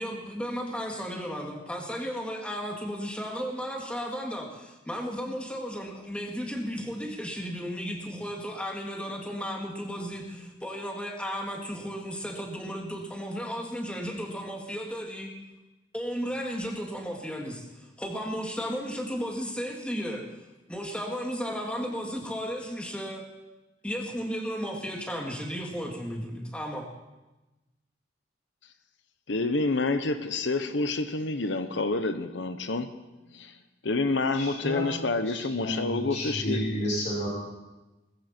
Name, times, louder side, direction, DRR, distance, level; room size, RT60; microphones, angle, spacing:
voice 1, 0.0-15.3 15.9-17.6 18.0-20.3 20.7-23.3 23.8-26.9, equal, 5° left, 0 dB, 2.3 m, -34 dB
voice 2, 29.3-32.9 33.3-33.6 33.8-36.6, left 3 dB, 80° left, 9 dB, 1.0 m, -28 dB
voice 3, 34.3-34.8 35.3-37.3, equal, 40° left, -8 dB, 6.6 m, -31 dB
20.5 x 14.5 x 4.5 m, 1.1 s
head